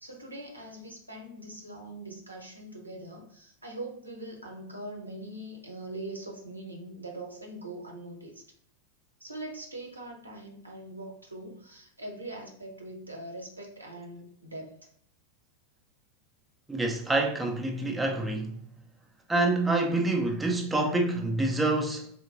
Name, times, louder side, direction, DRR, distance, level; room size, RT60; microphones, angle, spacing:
voice 1, 0.0-8.4 9.2-14.8, right 1 dB, 80° right, 0.8 m, -42 dB
voice 2, 16.7-18.6 19.3-22.1, right 2 dB, 5° right, 0.5 m, -27 dB
3.7 x 2.8 x 2.5 m
figure-of-eight pair, 90°, 0 cm